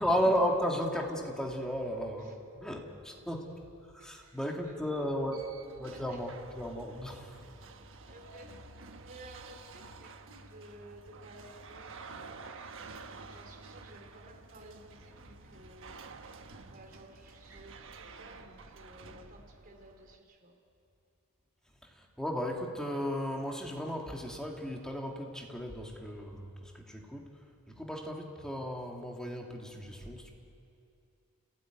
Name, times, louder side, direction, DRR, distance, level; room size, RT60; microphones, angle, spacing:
voice 1, 0.0-3.6 3.9-5.5 5.8-7.3 21.8-30.3, equal, 5° left, 0 dB, 2.4 m, -34 dB
voice 2, 2.7-3.6 4.0-5.5 5.9-6.3 6.9-7.1 7.4-7.7 8.1-8.7 9.0-12.4 13.3-16.0 16.7-20.6 27.7-27.8, right 1 dB, 40° right, 2 dB, 3.5 m, -55 dB
sound 1, 5.0-20.2, right 4 dB, 60° right, 1.3 m, -50 dB
30.0 x 17.0 x 9.5 m, 2.7 s
head